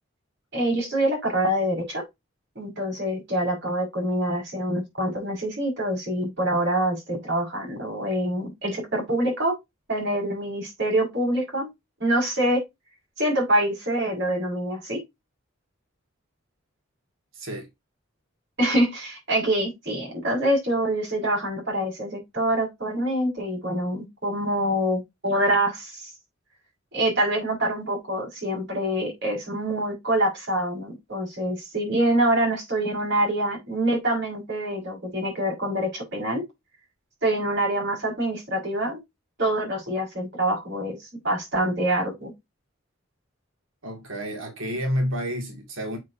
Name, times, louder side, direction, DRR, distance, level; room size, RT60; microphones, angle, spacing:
voice 1, 0.5-2.0 2.6-9.5 9.9-11.7 12.0-12.6 13.2-15.0 18.6-26.1 26.9-36.4 37.2-39.0 39.4-42.3, right 1 dB, 60° right, 5.3 m, -25 dB
voice 2, 17.3-17.7 43.8-46.0, equal, 75° right, 2.3 m, -29 dB
7.4 x 6.5 x 2.8 m
head